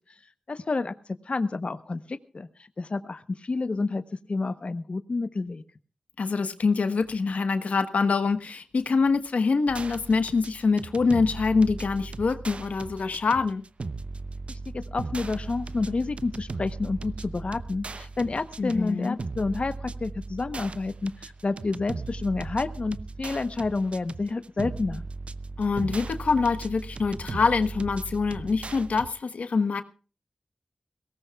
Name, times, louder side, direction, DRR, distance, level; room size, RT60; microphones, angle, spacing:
voice 1, 0.5-0.9 1.3-2.5 2.8-4.0 4.3-5.6 14.5-25.0, left 3 dB, 55° left, 10 dB, 0.9 m, -29 dB
voice 2, 6.2-13.6 18.6-19.2 25.6-29.8, left 4 dB, 90° left, 9 dB, 1.1 m, -25 dB
sound 1, 9.7-29.1, right 3 dB, 60° right, 0.7 m, -38 dB
22.0 x 18.0 x 2.3 m, 0.36 s
wide cardioid pair, 60°, 2 cm